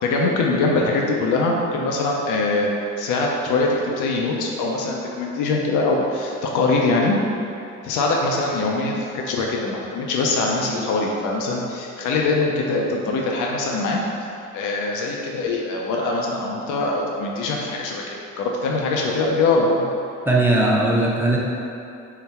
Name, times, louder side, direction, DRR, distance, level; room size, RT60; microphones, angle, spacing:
voice 1, 0.0-2.7 3.0-7.2 7.8-14.0 14.5-19.9, left 3 dB, 85° left, -1 dB, 0.5 m, -22 dB
voice 2, 20.3-21.4, right 2 dB, 5° right, -3 dB, 0.6 m, -18 dB
3.9 x 2.1 x 4.1 m, 2.7 s
cardioid pair, 90°, 30 cm